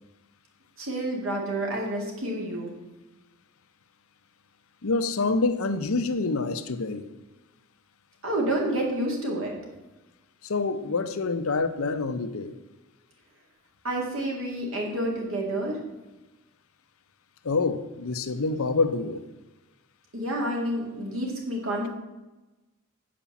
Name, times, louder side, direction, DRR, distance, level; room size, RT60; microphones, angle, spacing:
voice 1, 0.8-2.7 8.2-9.5 13.8-15.8 20.1-21.9, right 1 dB, 70° right, -1 dB, 2.2 m, -29 dB
voice 2, 4.8-7.0 10.4-12.5 17.4-19.2, left 3 dB, 85° left, 10 dB, 0.7 m, -27 dB
8.7 x 5.1 x 7.0 m, 1.1 s
head